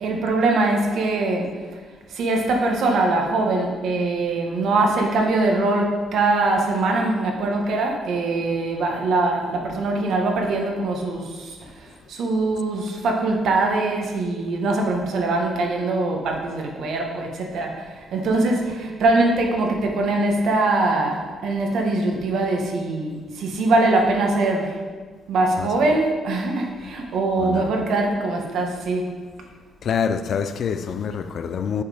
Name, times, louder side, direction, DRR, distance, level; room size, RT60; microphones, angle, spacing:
voice 1, 0.0-1.6 2.1-24.8 25.3-29.1, right 2 dB, 70° right, 1.3 m, -22 dB
voice 2, 25.6-26.0 27.4-27.6 29.8-31.8, left 7 dB, 60° left, 0.4 m, -26 dB
6.9 x 4.9 x 5.0 m
cardioid pair, 90°, 0 cm